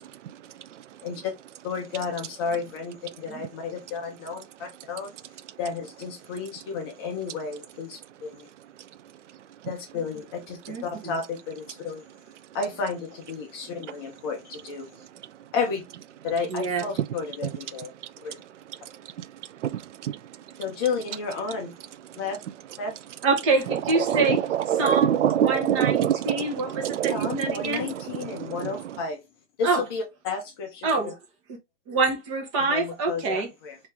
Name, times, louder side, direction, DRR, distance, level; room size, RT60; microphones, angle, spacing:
voice 1, 0.2-0.8 18.8-20.2 20.5-20.6 23.7-29.0, right 10 dB, 75° right, 0.5 m, -27 dB
voice 2, 1.6-5.1 5.6-8.5 9.7-12.0 12.5-14.9 15.5-15.8 16.2-17.9 18.2-18.4 20.6-21.7 22.2-22.4 22.8-22.9 27.1-29.2 29.6-31.1 32.7-33.8, left 5 dB, 20° left, 0.6 m, -32 dB
voice 3, 16.5-16.8 23.2-24.4 24.8-25.1 25.4-27.9 29.6-29.8 30.8-31.2 31.9-33.5, right 3 dB, 25° right, 0.9 m, -25 dB
3.1 x 2.8 x 3.4 m
hypercardioid pair, 155°, 36 cm